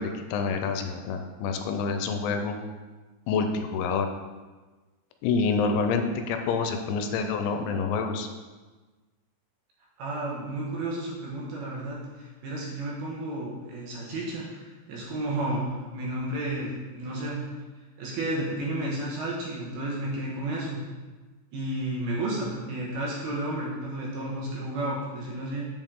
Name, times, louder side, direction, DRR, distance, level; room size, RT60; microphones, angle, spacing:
voice 1, 0.0-2.6 3.3-4.1 5.2-8.3, left 5 dB, 85° left, 6 dB, 3.0 m, -27 dB
voice 2, 10.0-17.4 18.0-20.8 21.5-25.6, right 1 dB, 70° right, -4 dB, 2.7 m, -32 dB
7.4 x 7.4 x 3.7 m, 1.3 s
omnidirectional pair, 5.4 m